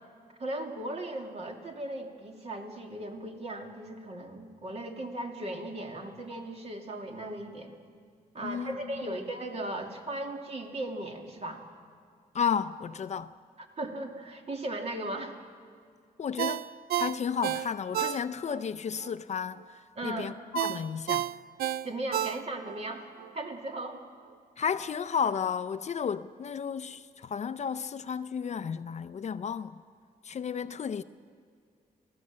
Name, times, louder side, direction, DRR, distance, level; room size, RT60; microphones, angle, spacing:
voice 1, 0.4-7.7 8.3-11.6 13.6-15.4 20.0-20.3 21.8-24.0, right 1 dB, 40° right, 2.8 m, -37 dB
voice 2, 8.4-8.8 12.3-13.3 16.2-16.7 17.0-19.6 20.0-21.3 24.6-29.7 30.2-31.0, left 7 dB, 45° left, 0.6 m, -32 dB
Ringtone, 16.4-18.6 19.0-19.1 20.6-22.8 23.2-23.3, right 12 dB, 85° right, 0.5 m, -31 dB
27.5 x 16.5 x 7.6 m
cardioid pair, 110°, 16 cm